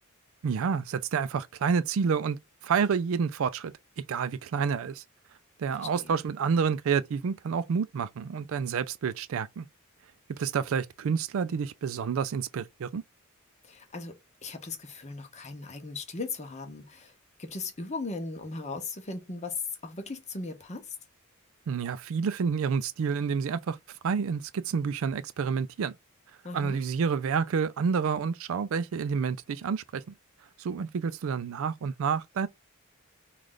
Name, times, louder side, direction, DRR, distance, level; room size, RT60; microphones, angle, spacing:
voice 1, 0.4-2.4 2.6-3.7 4.1-5.0 5.6-9.7 10.3-13.0 21.7-23.8 24.0-25.9 26.5-30.1 30.6-32.5, right 6 dB, 65° right, 0.4 m, -29 dB
voice 2, 5.7-6.2 13.6-14.1 14.4-17.1 17.4-21.0 26.4-26.8, left 3 dB, 30° left, 0.8 m, -38 dB
3.2 x 2.4 x 3.7 m
head